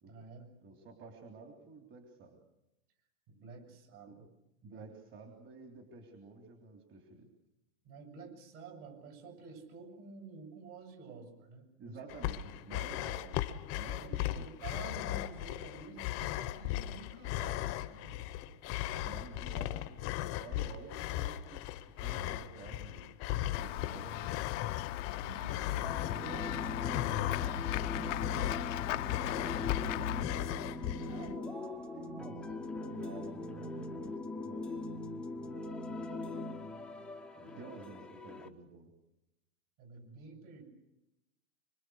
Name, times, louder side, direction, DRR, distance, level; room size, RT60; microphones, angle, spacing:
voice 1, 0.0-0.5 3.3-4.3 4.6-4.9 7.8-12.0 12.9-13.1 14.0-19.3 25.0-30.5 37.5-37.6 39.8-40.6, right 4 dB, 45° right, 5 dB, 7.9 m, -51 dB
voice 2, 0.6-2.4 4.1-4.2 4.6-7.3 11.8-13.4 13.7-14.5 19.0-20.0 20.4-23.2 23.5-24.5 31.0-34.9 35.5-36.4 37.3-38.9, right 3 dB, 30° right, 3 dB, 3.6 m, -51 dB
sound 1, 12.1-31.3, left 14 dB, 35° left, 1.1 m, -37 dB
Run / Walk footsteps / Bell, 23.5-30.2, left 14 dB, 65° left, 0.8 m, -38 dB
sound 2, 25.8-38.5, left 2 dB, ahead, 1.0 m, -41 dB
25.5 x 25.5 x 6.5 m, 0.93 s
hypercardioid pair, 140°, 41 cm